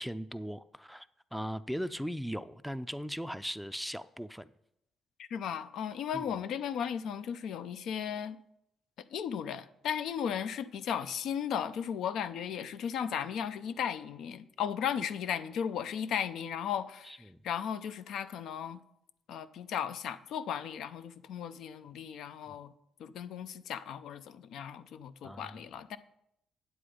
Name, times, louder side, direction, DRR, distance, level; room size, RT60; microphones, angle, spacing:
voice 1, 0.0-4.5 6.1-6.2 17.1-17.4 22.5-22.6 25.2-25.6, equal, ahead, 0.4 m, -38 dB
voice 2, 5.2-8.4 9.1-18.8 19.3-22.7 23.0-26.0, left 8 dB, 75° left, 0.5 m, -36 dB
9.9 x 7.8 x 5.0 m
cardioid pair, 90°, 0 cm